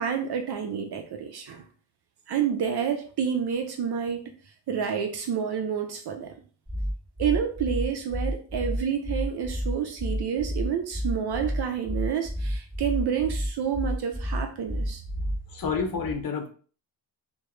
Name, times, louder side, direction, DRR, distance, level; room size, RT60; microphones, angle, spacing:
voice 1, 0.0-1.6 2.3-4.2 4.7-6.3 7.2-15.0, right 7 dB, 60° right, 5 dB, 0.5 m, -29 dB
sound 1, 6.7-15.6, equal, 10° right, 1.0 m, -30 dB
voice 2, 15.5-16.5, left 5 dB, 50° left, 3 dB, 0.7 m, -29 dB
2.2 x 2.0 x 2.9 m, 0.41 s
cardioid pair, 75°, 45 cm